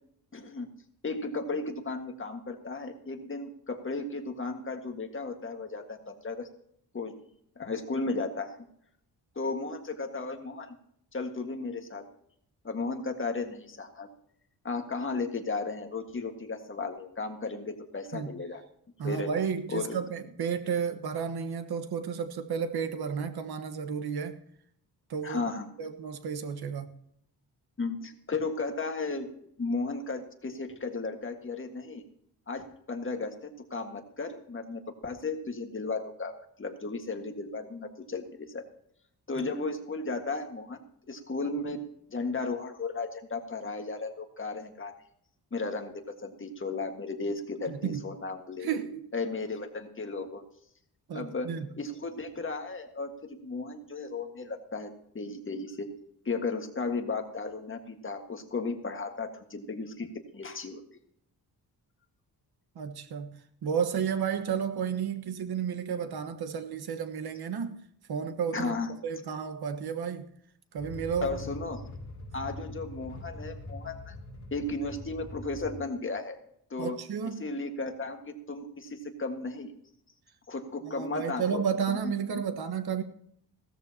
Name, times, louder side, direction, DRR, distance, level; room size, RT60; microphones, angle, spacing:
voice 1, 0.3-0.7 1.0-6.5 6.9-7.2 7.6-8.6 9.4-10.7 11.1-12.1 12.6-14.1 14.6-18.6 19.0-19.3 19.7-20.0 25.2-25.7 27.8-29.3 29.6-32.0 32.5-36.3 36.6-38.6 39.3-40.8 41.1-41.8 42.1-44.9 45.5-48.7 49.1-50.4 51.1-55.9 56.3-60.1 60.3-60.8 68.5-68.9 71.2-71.8 72.3-74.2 74.5-76.4 76.7-77.0 77.4-79.7 80.5-82.4, left 3 dB, 30° left, 1.7 m, -35 dB
voice 2, 19.0-24.4 25.1-25.4 25.8-26.9 39.4-39.5 47.7-48.0 48.6-49.1 51.1-51.7 62.7-63.3 63.6-67.8 68.1-68.7 69.0-70.3 70.7-71.3 76.8-77.5 80.9-83.0, right 7 dB, 70° right, 1.4 m, -32 dB
sound 1, 70.8-75.8, left 1 dB, 45° left, 3.4 m, -42 dB
17.0 x 13.5 x 2.9 m
cardioid pair, 120°, 39 cm